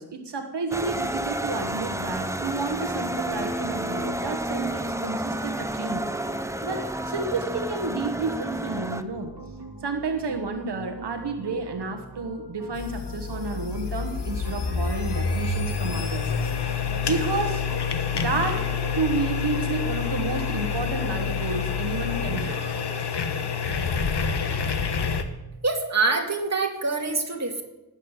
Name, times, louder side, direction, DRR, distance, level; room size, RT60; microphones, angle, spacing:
voice 1, 0.0-6.1 6.6-9.3 9.8-16.3 17.0-17.7 18.1-18.7 18.9-22.6, right 3 dB, 85° right, 5 dB, 1.4 m, -30 dB
sound 1, 0.7-9.0, right 1 dB, 5° right, 0.8 m, -30 dB
sound 2, 9.0-23.1, right 4 dB, 65° right, 2.1 m, -42 dB
sound 3, 12.7-25.2, left 6 dB, 85° left, 1.3 m, -27 dB
voice 2, 25.6-27.6, right 3 dB, 40° right, 1 dB, 2.6 m, -25 dB
18.5 x 7.4 x 8.1 m, 0.99 s
wide cardioid pair, 80°, 40 cm